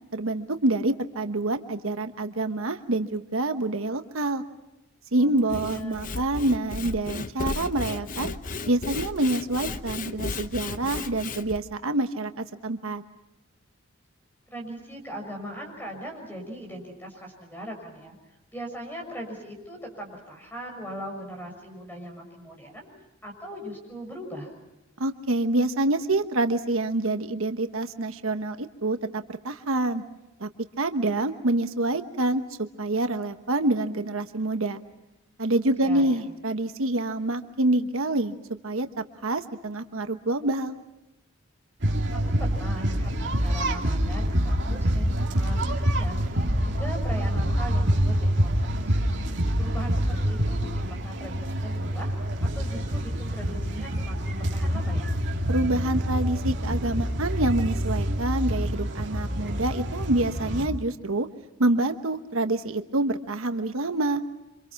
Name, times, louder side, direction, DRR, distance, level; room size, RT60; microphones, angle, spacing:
voice 1, 0.1-4.4 5.1-8.3 8.7-13.0 25.0-30.0 30.4-30.5 30.8-34.8 35.4-38.4 38.6-38.9 39.2-40.8 55.5-61.3 61.6-64.2, right 2 dB, 80° right, 8 dB, 1.2 m, -26 dB
voice 2, 5.2-6.0 14.5-18.2 18.5-22.9 23.2-24.5 35.7-36.2 42.1-49.0 49.6-52.3 52.5-55.1, equal, 10° left, 2 dB, 6.5 m, -39 dB
Sawing / Wood, 5.4-11.6, left 3 dB, 40° left, 0.8 m, -34 dB
sound 1, 41.8-60.7, equal, 55° right, 2.4 m, -26 dB
28.0 x 26.0 x 5.9 m, 0.96 s
head